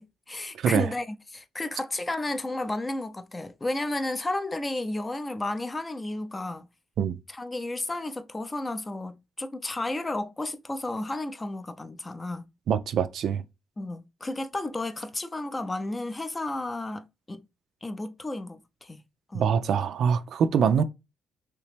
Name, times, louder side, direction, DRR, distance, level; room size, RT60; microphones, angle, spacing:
voice 1, 0.0-6.7 7.3-12.4 13.8-17.4 17.8-19.0 19.3-19.5, left 2 dB, 20° left, 0.5 m, -32 dB
voice 2, 12.7-13.4 19.3-20.8, right 7 dB, 70° right, 0.3 m, -24 dB
3.2 x 2.9 x 3.3 m
cardioid pair, 90°, 0 cm